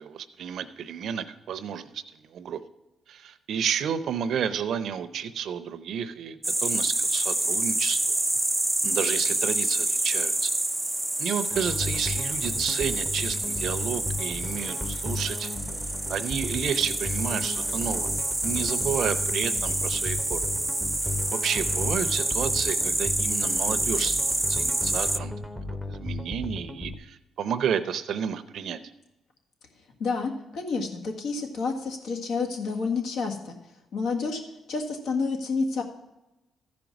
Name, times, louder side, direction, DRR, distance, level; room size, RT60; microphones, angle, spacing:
voice 1, 0.0-2.6 3.1-8.2 8.8-10.5 11.2-15.5 16.1-18.1 18.4-20.4 21.0-25.3 25.9-28.8, right 8 dB, 70° right, 12 dB, 0.6 m, -31 dB
sound 1, 6.4-25.2, right 1 dB, 10° right, 0.4 m, -27 dB
sound 2, 11.5-26.9, left 2 dB, 5° left, 0.8 m, -35 dB
voice 2, 30.0-33.5 33.9-34.4 34.7-35.8, left 4 dB, 75° left, 2 dB, 1.7 m, -29 dB
13.5 x 5.2 x 6.0 m, 0.98 s
cardioid pair, 90°, 0 cm